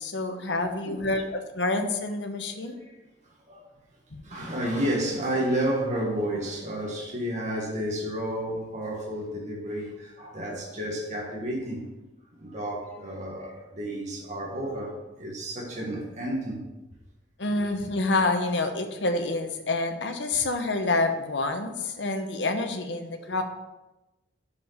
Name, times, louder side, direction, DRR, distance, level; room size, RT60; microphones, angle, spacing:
voice 1, 0.0-2.8 4.1-4.4 17.4-23.4, left 2 dB, 70° left, 1.0 m, -28 dB
voice 2, 2.5-2.9 3.2-3.6 4.2-11.9 12.4-16.6 23.2-23.3, right 1 dB, 40° right, 1.5 m, -31 dB
6.9 x 5.0 x 6.6 m
head